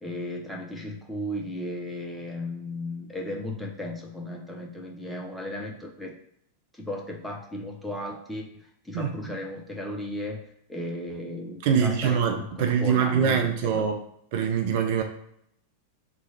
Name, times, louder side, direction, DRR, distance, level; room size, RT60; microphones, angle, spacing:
voice 1, 0.0-6.2 6.7-10.4 10.7-13.9, left 1 dB, ahead, -1 dB, 0.6 m, -35 dB
voice 2, 8.9-9.4 11.6-14.0 14.3-15.0, right 7 dB, 50° right, 4 dB, 0.5 m, -24 dB
3.1 x 2.4 x 4.0 m, 0.72 s
figure-of-eight pair, 90°, 0 cm